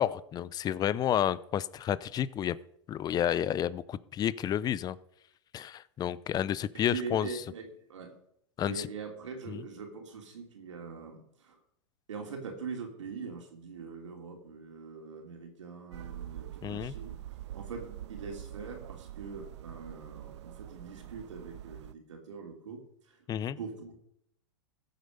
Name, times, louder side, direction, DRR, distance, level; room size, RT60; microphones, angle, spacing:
voice 1, 0.0-2.6 2.9-5.0 5.5-7.3 8.6-8.9 9.5-9.6 16.6-16.9 23.3-23.6, left 10 dB, 25° left, 19 dB, 0.6 m, -30 dB
voice 2, 6.7-8.2 8.6-11.6 12.1-17.2 17.5-23.2 23.6-24.0, right 5 dB, 85° right, 2 dB, 3.0 m, -42 dB
sound 1, 15.9-21.9, right 12 dB, 70° right, 0.7 m, -45 dB
15.0 x 8.1 x 5.3 m, 0.73 s
hypercardioid pair, 115°, 15 cm